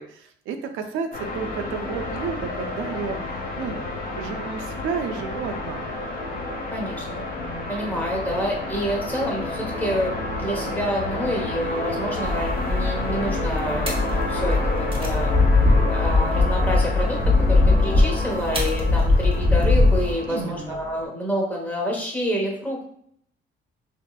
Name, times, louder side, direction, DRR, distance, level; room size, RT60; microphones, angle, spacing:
voice 1, 0.0-3.2 3.6-3.8 4.1-5.8 20.3-20.8, right 6 dB, 85° right, 6 dB, 0.4 m, -31 dB
sound 1, 1.1-21.1, left 2 dB, 45° left, 0.8 m, -30 dB
voice 2, 6.7-7.2 7.7-22.9, equal, 10° left, -2 dB, 1.0 m, -28 dB
sound 2, 12.2-20.1, left 2 dB, 25° right, 0.8 m, -20 dB
3.4 x 2.0 x 2.3 m, 0.66 s
cardioid pair, 90°, 20 cm